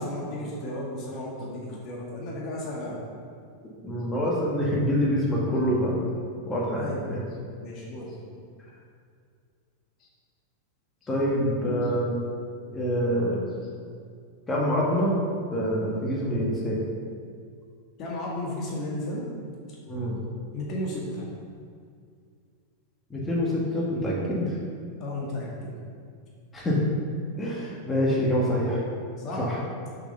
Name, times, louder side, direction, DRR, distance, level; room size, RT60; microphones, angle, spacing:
voice 1, 0.0-3.0 6.8-8.4 10.0-10.1 18.0-19.3 20.5-21.3 25.0-25.8 29.2-29.5, left 1 dB, 35° left, -3 dB, 1.9 m, -34 dB
voice 2, 3.8-6.0 6.5-7.2 11.1-12.2 12.7-13.4 14.5-15.2 15.5-16.8 19.9-20.2 23.1-24.5 26.5-26.8 27.4-28.8 29.4-29.6, equal, 15° left, -5 dB, 1.9 m, -26 dB
7.1 x 6.1 x 5.8 m, 2.2 s
figure-of-eight pair, 90°, 0 cm